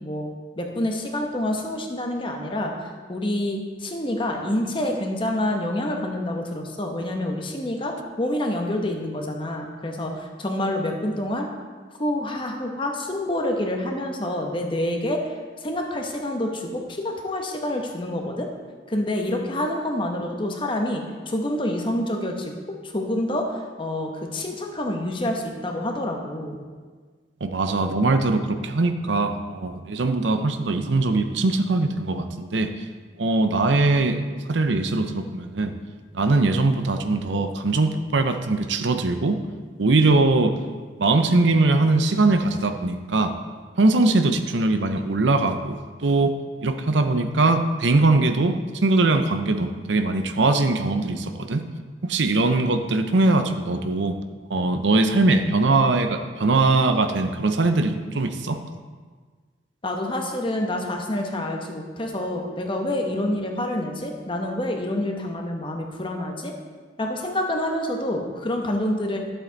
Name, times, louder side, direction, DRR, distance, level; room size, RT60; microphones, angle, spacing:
voice 1, 0.0-2.7 3.1-11.5 12.0-15.2 15.6-18.5 18.9-22.5 22.8-26.6 59.8-66.5 67.0-69.2, left 1 dB, 30° left, 2 dB, 1.1 m, -27 dB
voice 2, 27.4-32.7 33.2-34.2 34.5-35.7 36.1-39.4 39.8-40.6 41.0-43.3 43.8-46.3 46.6-51.6 52.0-54.2 54.5-58.6, right 2 dB, 80° right, 7 dB, 0.7 m, -21 dB
12.0 x 7.9 x 4.0 m, 1.5 s
head